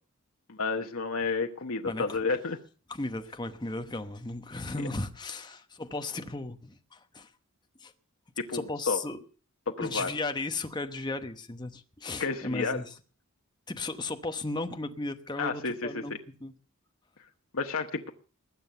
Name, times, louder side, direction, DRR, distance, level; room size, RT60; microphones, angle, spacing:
voice 1, 0.5-2.6 4.8-4.9 8.5-9.0 9.8-10.1 12.2-12.8 15.4-16.0 17.5-18.1, left 4 dB, 65° left, 1.1 m, -31 dB
voice 2, 1.8-2.2 2.9-7.3 7.8-7.9 8.5-9.2 9.8-12.9 13.7-16.1 16.4-16.5, left 2 dB, 20° left, 0.9 m, -35 dB
20.0 x 7.7 x 6.7 m
head